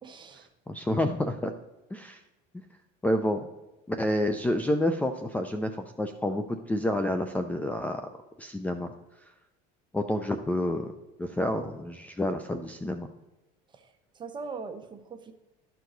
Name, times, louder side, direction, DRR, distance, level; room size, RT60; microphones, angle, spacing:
voice 1, 0.0-0.5 13.7-15.3, right 4 dB, 25° right, 6 dB, 1.0 m, -41 dB
voice 2, 0.7-1.5 1.9-2.2 3.0-3.5 3.9-8.0 8.4-8.9 9.9-10.9 11.2-13.1, left 1 dB, 10° left, 7 dB, 0.5 m, -29 dB
12.5 x 4.7 x 3.9 m, 1.0 s
cardioid pair, 120°, 19 cm